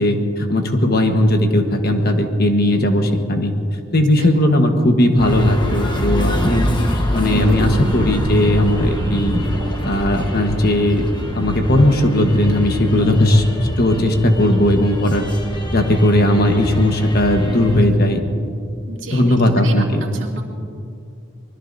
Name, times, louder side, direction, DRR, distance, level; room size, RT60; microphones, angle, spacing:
voice 1, 0.0-3.5 3.9-6.7 7.1-9.4 9.8-11.0 11.3-13.4 13.8-15.2 15.7-18.2 19.1-20.0, left 1 dB, 45° left, 4 dB, 1.3 m, -17 dB
sound 1, 5.2-17.9, equal, 20° left, 1.2 m, -25 dB
sound 2, 7.2-11.9, equal, 45° right, 1.8 m, -27 dB
voice 2, 18.9-19.3 19.6-19.7 20.0-20.4, right 4 dB, 65° right, -1 dB, 2.4 m, -33 dB
25.5 x 20.5 x 2.7 m, 2.4 s
head